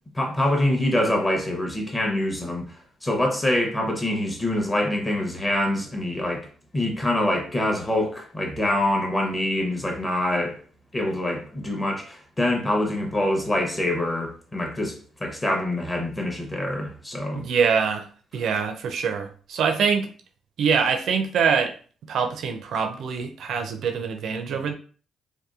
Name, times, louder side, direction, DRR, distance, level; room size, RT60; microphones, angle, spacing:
voice 1, 0.1-2.7 3.0-6.5 6.7-10.6 10.9-14.9 15.2-17.4, left 1 dB, 20° left, 0.7 m, -25 dB
voice 2, 17.3-18.1 18.3-20.1 20.6-21.7 22.1-24.7, right 6 dB, 70° right, 0.4 m, -24 dB
2.7 x 2.2 x 2.4 m
cardioid pair, 90°, 0 cm